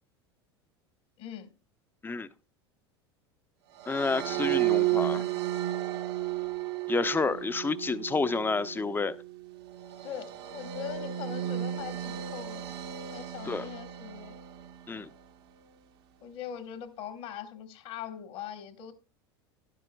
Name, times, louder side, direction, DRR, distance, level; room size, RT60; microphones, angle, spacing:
voice 1, 1.2-1.5 10.0-12.8 13.1-14.4 16.2-18.9, left 9 dB, 60° left, 1.6 m, -41 dB
sound 1, 3.8-15.1, right 14 dB, 65° right, 1.0 m, -33 dB
voice 2, 3.9-5.2 6.9-9.2 13.5-13.6 14.9-15.1, left 4 dB, 15° left, 0.6 m, -29 dB
12.5 x 11.0 x 2.3 m
hypercardioid pair, 80°, 14 cm